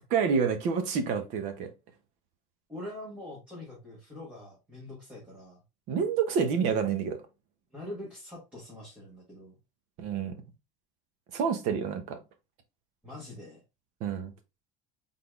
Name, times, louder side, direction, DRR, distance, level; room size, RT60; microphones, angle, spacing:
voice 1, 0.1-1.7 5.9-7.2 10.0-10.3 11.3-12.2 14.0-14.3, right 6 dB, 45° right, 1.0 m, -28 dB
voice 2, 2.7-5.6 7.7-9.5 13.0-13.6, left 1 dB, 10° right, 1.6 m, -43 dB
4.0 x 3.8 x 3.4 m
cardioid pair, 175°, 16 cm